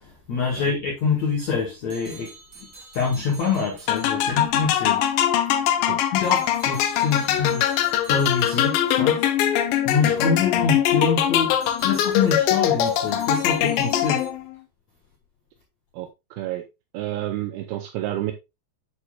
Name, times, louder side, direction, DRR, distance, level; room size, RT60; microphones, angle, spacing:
voice 1, 0.0-2.3 2.6-2.7 2.9-5.0 6.1-7.7 8.1-14.2, left 5 dB, 55° left, 2.2 m, -25 dB
sound 1, 1.9-4.7 6.2-9.2 11.6-14.3, right 4 dB, 30° right, 1.7 m, -46 dB
sound 2, 3.9-14.5, left 11 dB, 75° left, 2.1 m, -22 dB
voice 2, 10.1-10.4 15.9-16.6 16.9-18.3, right 14 dB, 80° right, 2.5 m, -30 dB
8.6 x 8.0 x 2.4 m
omnidirectional pair, 5.0 m